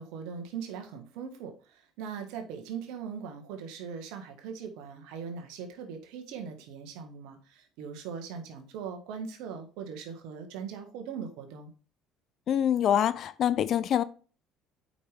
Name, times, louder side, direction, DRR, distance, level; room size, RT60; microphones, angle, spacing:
voice 1, 0.0-11.7, right 6 dB, 70° right, 1.6 m, -40 dB
voice 2, 12.5-14.0, left 10 dB, 55° left, 0.6 m, -25 dB
8.3 x 5.5 x 3.4 m
hypercardioid pair, 65°, 0 cm